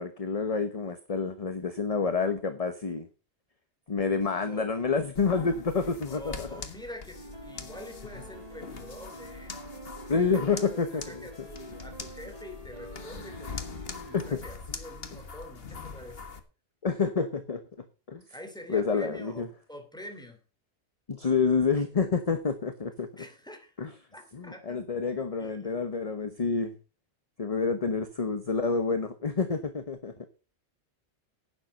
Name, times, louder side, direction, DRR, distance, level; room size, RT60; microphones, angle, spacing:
voice 1, 0.0-3.1 3.9-6.6 10.1-11.2 14.1-14.4 16.8-17.6 18.1-18.2 18.7-19.5 21.1-23.1 23.8-23.9 24.3-26.7 27.4-30.3, left 5 dB, 35° left, 9 dB, 1.0 m, -28 dB
voice 2, 4.5-4.8 6.0-9.6 10.1-16.2 18.3-20.4 23.2-23.7 24.1-24.8 25.4-25.8, left 1 dB, 5° left, 5 dB, 2.8 m, -46 dB
sound 1, 5.1-16.4, left 4 dB, 60° left, 1.6 m, -43 dB
sound 2, 7.1-14.3, right 1 dB, 35° right, 1.8 m, -47 dB
11.5 x 9.0 x 5.5 m, 0.33 s
omnidirectional pair, 1.2 m